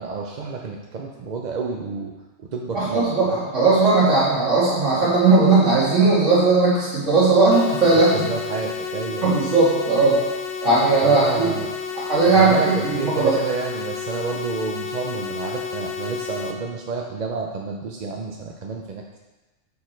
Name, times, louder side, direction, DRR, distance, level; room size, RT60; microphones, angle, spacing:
voice 1, 0.0-2.1 2.4-3.4 7.9-9.3 11.0-11.7 12.2-19.2, right 4 dB, 50° right, 0 dB, 0.5 m, -30 dB
voice 2, 2.7-8.3 9.2-10.2 10.6-11.5 12.1-13.4, right 3 dB, 70° right, -8 dB, 3.0 m, -17 dB
sound 1, 7.5-16.5, left 6 dB, 70° left, 0.9 m, -31 dB
8.1 x 5.0 x 4.4 m, 1.1 s
omnidirectional pair, 1.4 m